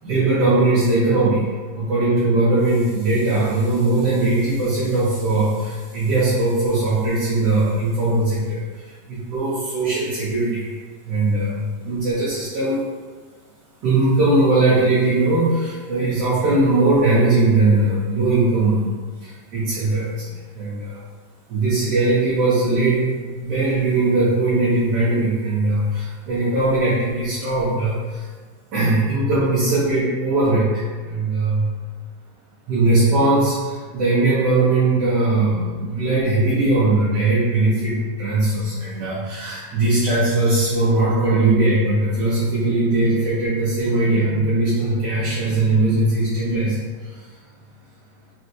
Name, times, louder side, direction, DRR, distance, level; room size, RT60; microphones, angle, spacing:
voice 1, 0.0-1.5 1.7-10.8 11.0-12.8 13.8-18.8 19.2-21.0 21.5-28.3 28.7-31.7 32.7-47.3, right 2 dB, 85° right, -10 dB, 1.4 m, -20 dB
4.2 x 2.3 x 2.5 m, 1.4 s
omnidirectional pair, 1.8 m